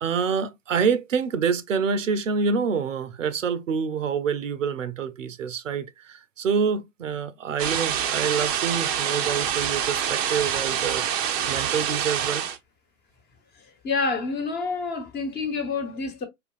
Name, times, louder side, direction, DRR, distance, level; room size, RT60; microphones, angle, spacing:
voice 1, 0.0-12.4, right 6 dB, 75° right, 0.6 m, -27 dB
sound 1, 7.6-12.6, right 9 dB, 30° right, 0.5 m, -26 dB
voice 2, 13.8-16.2, left 4 dB, 25° left, 1.1 m, -28 dB
4.8 x 2.5 x 2.4 m
figure-of-eight pair, 100°, 38 cm